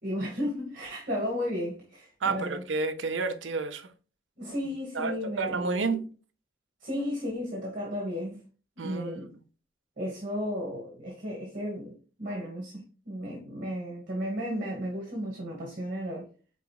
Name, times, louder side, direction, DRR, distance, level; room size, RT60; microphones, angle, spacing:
voice 1, 0.0-2.6 4.4-5.6 6.8-8.4 8.8-9.3 10.0-16.3, equal, 45° right, 1.4 m, -34 dB
voice 2, 2.2-3.9 4.9-6.1 8.8-9.2, right 4 dB, 70° right, 0.7 m, -30 dB
4.9 x 3.8 x 2.3 m
head